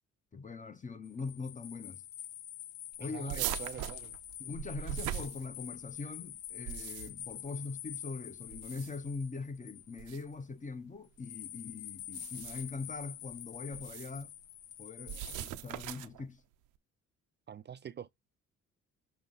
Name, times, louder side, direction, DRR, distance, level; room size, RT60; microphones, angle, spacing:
voice 1, 0.3-2.0 3.0-3.5 3.8-3.9 4.4-14.3 14.8-16.4, left 4 dB, 25° left, 0.8 m, -42 dB
sound 1, 1.0-10.3 11.2-15.5, left 11 dB, 85° left, 0.7 m, -46 dB
voice 2, 3.0-4.1 17.5-18.1, right 8 dB, 35° right, 0.4 m, -45 dB
sound 2, 3.3-5.9 6.5-7.3 8.5-9.1 10.0-10.2 12.0-12.8 13.7-14.2 15.1-16.2, right 13 dB, 85° right, 0.6 m, -40 dB
6.9 x 2.9 x 5.5 m
cardioid pair, 90°, 30 cm